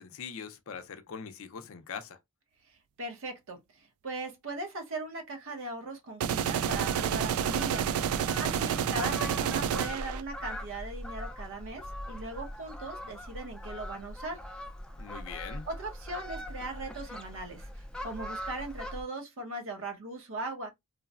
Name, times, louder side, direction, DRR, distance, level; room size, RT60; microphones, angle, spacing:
voice 1, 0.0-2.2 15.0-15.7, left 6 dB, 65° left, 0.5 m, -42 dB
voice 2, 3.0-7.9 8.4-14.4 15.7-20.7, right 2 dB, 60° right, 0.9 m, -39 dB
sound 1, 6.2-10.2, right 8 dB, 80° right, 0.3 m, -29 dB
Fowl, 6.6-19.0, left 1 dB, 5° left, 0.4 m, -41 dB
3.1 x 2.0 x 2.3 m
head